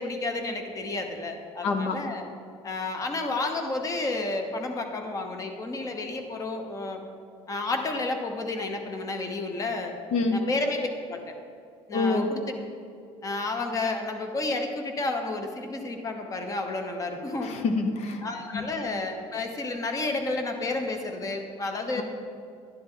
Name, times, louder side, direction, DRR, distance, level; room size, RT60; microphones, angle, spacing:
voice 1, 0.0-2.2 2.6-7.0 7.5-9.9 10.3-11.3 11.9-12.4 13.2-17.5 18.2-22.0, left 2 dB, 30° left, 5 dB, 1.0 m, -31 dB
voice 2, 1.6-1.9 10.1-10.4 11.9-12.3 17.4-18.2 18.5-18.7, left 3 dB, 70° left, 6 dB, 0.9 m, -26 dB
12.0 x 10.0 x 3.9 m, 2.4 s
cardioid pair, 145°, 12 cm